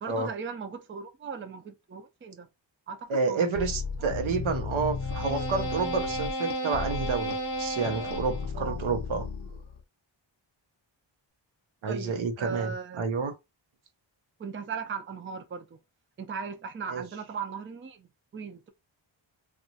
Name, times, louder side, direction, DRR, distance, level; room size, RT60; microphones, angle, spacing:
voice 1, 0.0-2.5 2.9-3.5 8.5-8.8 11.9-13.1 14.4-15.8 16.2-18.7, right 6 dB, 25° right, 0.4 m, -38 dB
voice 2, 3.1-9.3 11.8-13.4 16.9-17.0, right 4 dB, 85° right, 0.7 m, -29 dB
sound 1, 3.6-9.8, left 2 dB, 50° left, 0.8 m, -33 dB
2.8 x 2.3 x 2.7 m
wide cardioid pair, 85°, 47 cm